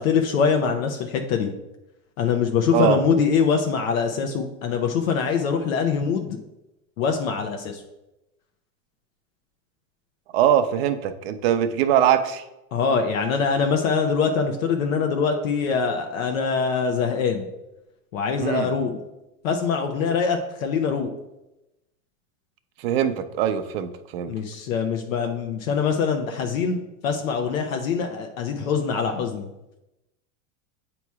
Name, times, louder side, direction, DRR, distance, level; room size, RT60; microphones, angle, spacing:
voice 1, 0.0-1.5 2.2-6.4 7.0-7.8 12.7-17.5 18.1-19.0 19.4-21.1 24.3-26.8 27.0-29.5, left 6 dB, 75° left, 4 dB, 0.8 m, -23 dB
voice 2, 10.3-12.4 18.4-18.7 22.8-24.3, right 10 dB, 45° right, 10 dB, 0.5 m, -22 dB
8.4 x 3.0 x 4.6 m, 0.94 s
supercardioid pair, 165°, 41 cm